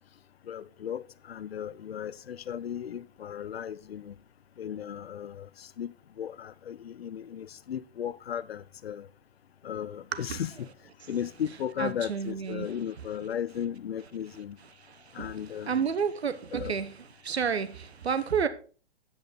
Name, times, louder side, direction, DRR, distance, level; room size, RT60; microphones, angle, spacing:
voice 1, 0.5-4.1 4.6-5.9 6.2-9.1 9.6-10.7 11.1-14.6 15.1-15.9 16.5-16.7, left 9 dB, 70° left, 0.7 m, -36 dB
voice 2, 11.8-12.7 14.9-15.3 15.7-16.9 17.2-18.5, right 6 dB, 80° right, 1.1 m, -30 dB
8.7 x 8.6 x 4.2 m
hypercardioid pair, 135°, 32 cm